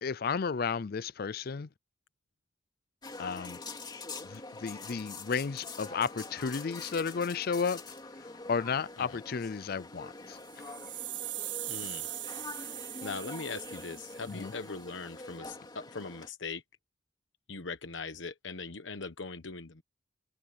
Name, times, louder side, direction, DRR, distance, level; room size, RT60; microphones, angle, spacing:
voice 1, 0.0-1.7 3.2-3.6 4.2-7.8 8.5-10.4 10.6-10.7 14.3-14.5, left 5 dB, 55° left, 0.5 m, -33 dB
sound 1, 3.0-16.3, left 3 dB, 25° left, 3.0 m, -45 dB
sound 2, 10.4-14.6, right 15 dB, 75° right, 1.6 m, -41 dB
voice 2, 11.7-12.1 13.0-16.6 17.5-19.8, left 4 dB, 85° left, 1.1 m, -40 dB
head